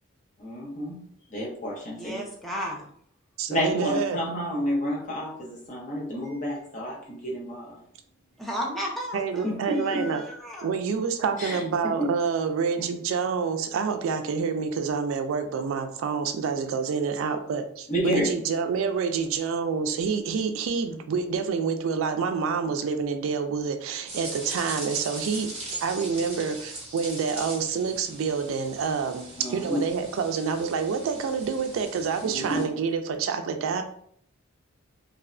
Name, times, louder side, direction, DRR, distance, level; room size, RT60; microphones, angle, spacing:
voice 1, 0.4-1.0 1.3-2.2 3.5-7.8 9.4-10.1 11.4-11.6 12.8-12.9 17.9-18.4 29.4-29.8 32.2-32.7, equal, 35° left, -3 dB, 0.7 m, -30 dB
voice 2, 1.9-2.9 6.2-6.4 8.4-10.8, equal, ahead, -3 dB, 0.4 m, -34 dB
voice 3, 3.4-4.2 9.1-10.2 10.6-33.8, right 5 dB, 75° right, 7 dB, 0.3 m, -28 dB
sound 1, 24.1-32.6, right 2 dB, 30° right, 0.8 m, -40 dB
2.6 x 2.1 x 2.4 m, 0.64 s
head